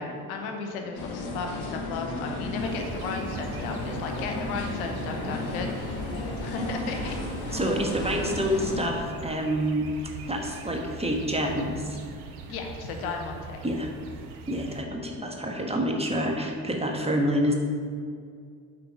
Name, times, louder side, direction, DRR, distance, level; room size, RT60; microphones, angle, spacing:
voice 1, 0.0-7.6 12.5-13.6, left 4 dB, 80° left, 3 dB, 0.8 m, -35 dB
sound 1, 1.0-8.9, left 2 dB, 65° left, 1.4 m, -33 dB
sound 2, 2.6-14.8, right 3 dB, 80° right, 0.7 m, -42 dB
voice 2, 7.5-9.9 10.3-12.0 13.6-13.9 14.5-17.5, equal, 15° right, 1 dB, 1.4 m, -27 dB
7.7 x 3.9 x 5.9 m, 2.2 s
hypercardioid pair, 45°, 43 cm